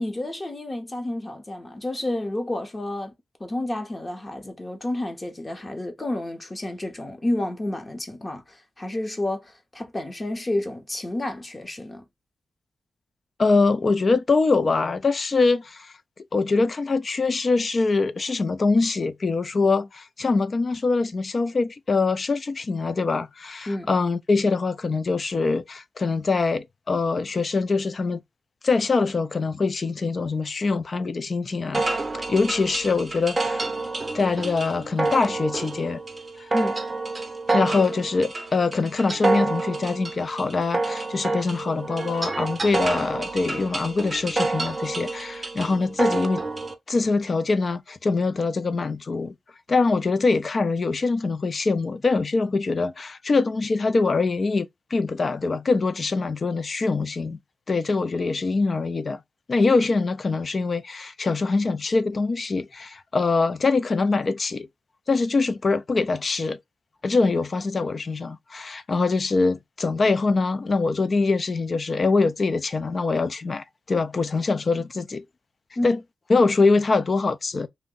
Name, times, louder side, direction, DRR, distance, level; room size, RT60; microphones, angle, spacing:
voice 1, 0.0-3.1 3.4-12.0 23.7-23.9 36.5-36.8 75.8-75.9, left 1 dB, 25° left, 0.7 m, -30 dB
voice 2, 13.4-15.9 16.3-28.2 28.6-31.8 32.1-33.7 34.1-36.0 37.5-46.4 46.9-49.3 49.7-57.4 57.7-59.2 59.5-64.7 65.1-66.6 67.0-75.2 75.8-76.0 76.3-77.7, left 3 dB, 45° left, 0.3 m, -23 dB
sound 1, 31.7-46.7, right 3 dB, 30° right, 0.6 m, -28 dB
2.6 x 2.1 x 3.6 m
wide cardioid pair, 100°, 0 cm